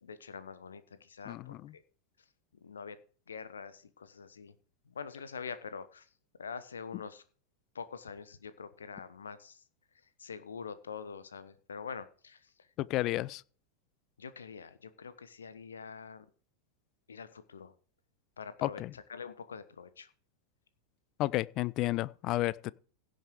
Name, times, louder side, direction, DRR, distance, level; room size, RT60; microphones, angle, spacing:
voice 1, 0.0-1.8 2.6-3.0 3.3-4.5 4.9-6.1 6.4-7.2 7.7-9.6 10.2-12.4 14.2-16.3 17.1-17.7 18.4-20.1, left 6 dB, 70° left, 1.1 m, -45 dB
voice 2, 1.3-1.7 12.8-13.4 18.6-18.9 21.2-22.7, left 17 dB, 35° left, 0.5 m, -32 dB
16.5 x 6.4 x 5.0 m
figure-of-eight pair, 90°, 0 cm